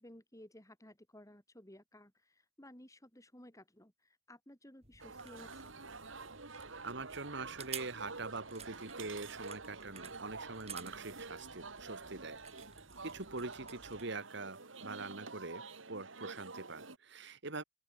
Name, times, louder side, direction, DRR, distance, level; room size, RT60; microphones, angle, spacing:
voice 1, 0.0-5.8, left 1 dB, 15° left, 5.3 m, -57 dB
sound 1, 4.8-14.1, right 7 dB, 35° right, 6.0 m, -53 dB
sound 2, 5.0-17.0, right 4 dB, 85° right, 3.5 m, -49 dB
voice 2, 6.8-12.4 13.0-17.6, right 3 dB, 65° right, 2.4 m, -44 dB
open air
head